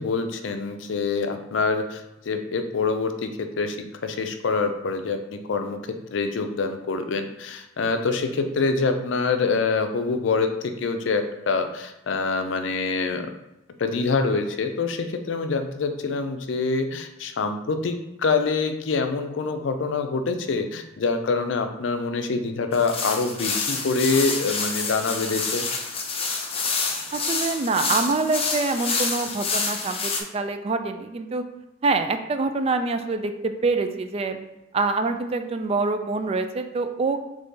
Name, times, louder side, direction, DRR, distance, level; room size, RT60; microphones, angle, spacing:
voice 1, 0.0-3.8 4.0-5.8 6.1-13.3 13.8-25.6, left 4 dB, 80° left, 7 dB, 0.5 m, -25 dB
sound 1, 22.7-30.2, left 4 dB, 30° left, 0.6 m, -28 dB
voice 2, 27.1-31.4 31.8-34.4 34.7-37.2, right 3 dB, 35° right, 8 dB, 0.3 m, -25 dB
3.7 x 3.2 x 3.9 m, 0.93 s
head